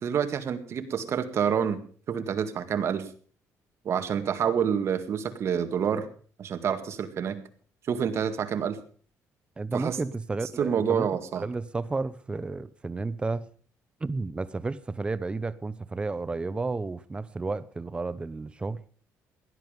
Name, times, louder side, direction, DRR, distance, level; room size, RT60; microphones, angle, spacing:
voice 1, 0.0-3.1 3.9-6.1 6.4-7.4 7.9-8.8 9.7-10.0 10.6-11.5, right 7 dB, 50° right, 1.9 m, -28 dB
voice 2, 9.6-11.1 11.4-13.5 14.0-18.8, right 3 dB, 15° right, 0.7 m, -32 dB
17.0 x 11.5 x 5.1 m
cardioid pair, 125°, 6 cm